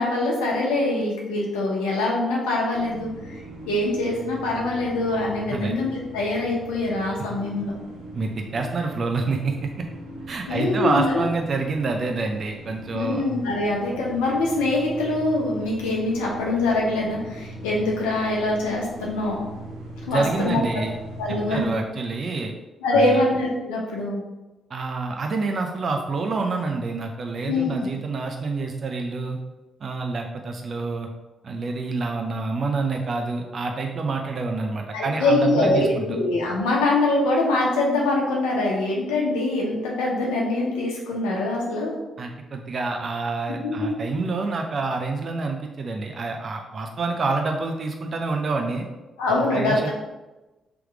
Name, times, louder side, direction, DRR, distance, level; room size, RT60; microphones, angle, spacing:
voice 1, 0.0-3.4 3.7-7.8 10.5-11.2 12.9-19.4 20.1-20.6 21.2-21.7 22.8-24.2 27.5-27.7 34.9-41.9 43.6-44.0 49.2-49.9, left 2 dB, 80° left, -3 dB, 0.9 m, -24 dB
sound 1, 2.7-21.7, right 1 dB, 90° right, 0.7 m, -40 dB
voice 2, 8.1-9.8 10.3-13.3 20.1-21.0 21.3-22.5 22.9-23.2 24.7-29.4 29.8-31.1 31.4-36.2 42.2-48.8 49.3-49.9, right 3 dB, 50° right, 3 dB, 0.5 m, -27 dB
3.4 x 3.1 x 4.7 m, 1.1 s
hypercardioid pair, 40°, 0 cm